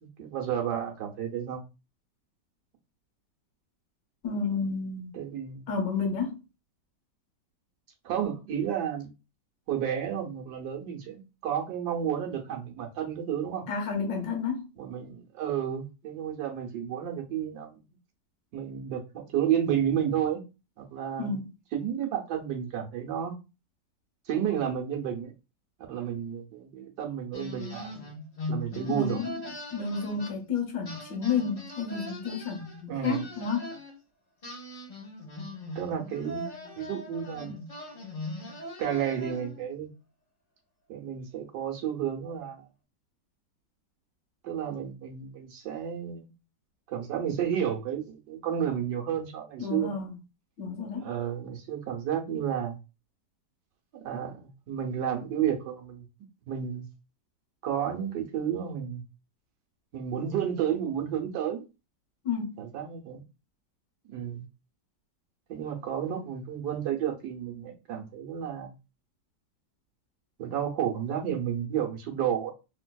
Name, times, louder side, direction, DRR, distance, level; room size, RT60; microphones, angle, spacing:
voice 1, 0.0-1.6 5.1-5.7 8.0-9.1 9.7-13.6 14.8-17.8 18.5-20.4 20.8-21.4 21.7-23.3 24.3-25.3 25.9-28.1 28.5-29.2 32.9-33.3 35.7-37.5 38.8-39.9 40.9-42.7 44.4-46.3 46.9-49.9 51.0-52.8 53.9-56.0 56.5-56.9 57.6-59.0 59.9-61.6 62.6-63.2 64.1-64.4 65.5-68.7 70.4-72.5, right 9 dB, 70° right, 1.3 m, -31 dB
voice 2, 4.2-5.2 5.7-6.4 13.7-14.7 21.2-21.5 28.9-29.4 29.7-33.7 49.6-50.2 50.6-51.1 62.2-62.5, left 5 dB, 80° left, 1.6 m, -31 dB
sound 1, 27.3-30.6 30.8-33.9 34.4-39.7, left 1 dB, 40° left, 0.6 m, -40 dB
3.3 x 2.9 x 2.2 m
omnidirectional pair, 1.9 m